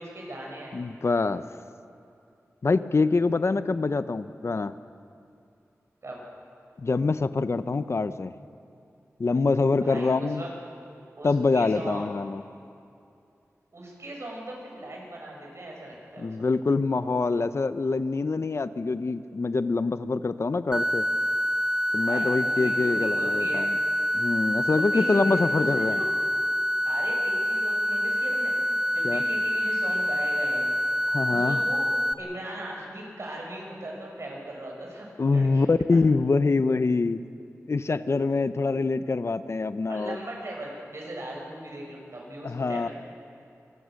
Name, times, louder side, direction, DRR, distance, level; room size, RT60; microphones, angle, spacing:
voice 1, 0.0-0.8 6.0-6.2 9.8-10.5 11.2-12.1 13.7-16.5 22.0-23.7 24.6-26.1 26.9-28.6 28.9-30.7 31.3-31.8 32.2-36.0 39.9-42.9, right 1 dB, 60° right, -1 dB, 7.1 m, -39 dB
voice 2, 0.7-1.4 2.6-4.7 6.8-8.3 9.2-10.4 11.2-12.4 16.2-21.1 21.9-23.8 24.1-26.0 29.0-29.2 31.1-31.6 35.2-37.2 37.7-40.2 42.4-42.9, left 3 dB, 55° left, 12 dB, 0.7 m, -25 dB
sound 1, 20.7-32.1, equal, 10° right, 1.0 m, -26 dB
26.0 x 21.0 x 6.5 m, 2.6 s
wide cardioid pair, 60°, 5 cm